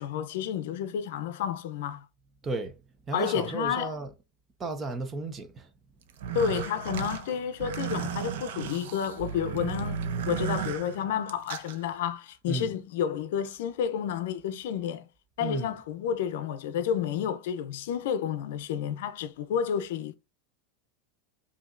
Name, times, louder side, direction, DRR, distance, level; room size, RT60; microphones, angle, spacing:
voice 1, 0.0-2.1 3.1-3.9 6.3-15.1 15.4-20.2, left 8 dB, 75° left, 0.5 m, -30 dB
voice 2, 3.1-4.1 4.6-5.7 12.5-12.7 15.4-15.7, right 2 dB, 20° right, 0.5 m, -33 dB
sound 1, 6.1-11.8, right 8 dB, 75° right, 0.6 m, -34 dB
5.1 x 2.8 x 2.5 m
supercardioid pair, 165°, 0 cm